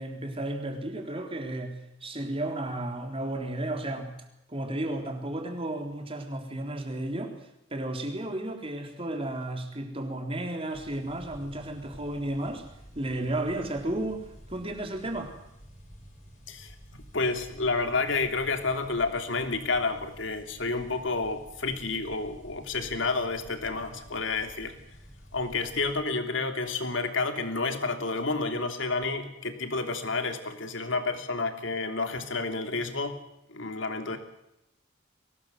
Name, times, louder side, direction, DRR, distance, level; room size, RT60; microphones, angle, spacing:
voice 1, 0.0-4.1 4.5-7.3 7.7-12.6 12.9-15.3, right 1 dB, 30° right, 4 dB, 3.7 m, -33 dB
sound 1, 10.7-26.0, equal, 45° left, 6.0 m, -50 dB
voice 2, 17.1-24.7 25.3-33.2 33.5-34.2, left 3 dB, 75° left, 7 dB, 3.0 m, -30 dB
23.0 x 19.0 x 7.9 m, 0.85 s
head